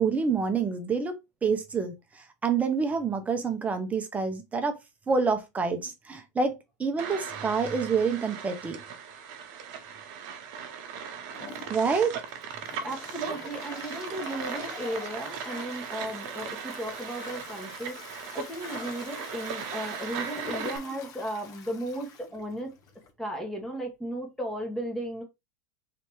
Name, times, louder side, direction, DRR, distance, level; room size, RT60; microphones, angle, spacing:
voice 1, 0.0-4.7 5.1-8.8 11.7-12.1, right 5 dB, 15° right, 0.9 m, -27 dB
sound 1, 7.0-20.8, right 7 dB, 50° right, 0.9 m, -38 dB
Toilet flush, 11.3-23.1, left 5 dB, 35° left, 1.0 m, -45 dB
voice 2, 12.8-22.7 23.2-25.2, right 1 dB, 5° left, 1.3 m, -35 dB
3.4 x 2.8 x 4.5 m
supercardioid pair, 125°, 10 cm